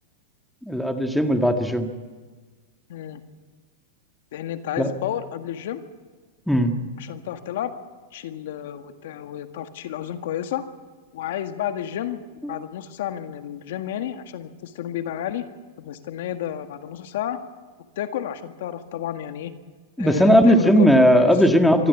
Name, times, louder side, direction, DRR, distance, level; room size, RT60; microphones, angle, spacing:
voice 1, 0.6-1.9 4.8-4.9 6.5-6.7 12.4-12.6 20.0-21.9, equal, ahead, 5 dB, 1.7 m, -17 dB
voice 2, 2.9-3.2 4.3-5.8 7.0-7.7 8.1-10.6 11.1-12.2 12.5-15.4 15.8-17.4 17.9-19.5 20.0-21.3, left 11 dB, 70° left, 8 dB, 1.7 m, -31 dB
24.5 x 13.5 x 8.3 m, 1.4 s
hypercardioid pair, 135°, 0 cm